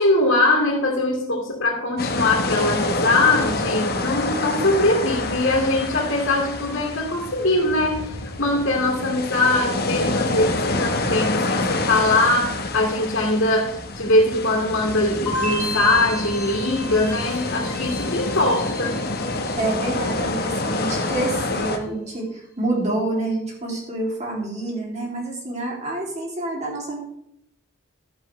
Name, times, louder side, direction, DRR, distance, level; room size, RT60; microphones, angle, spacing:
voice 1, 0.0-8.1 8.4-19.0, left 2 dB, 60° left, 0 dB, 2.4 m, -21 dB
sound 1, 2.0-21.8, left 2 dB, 45° left, 1.2 m, -27 dB
sound 2, 15.3-20.3 20.6-21.2, left 1 dB, 10° left, 4.5 m, -33 dB
voice 2, 19.6-27.0, right 2 dB, 30° right, -2 dB, 2.8 m, -27 dB
12.0 x 10.0 x 3.3 m, 0.76 s
head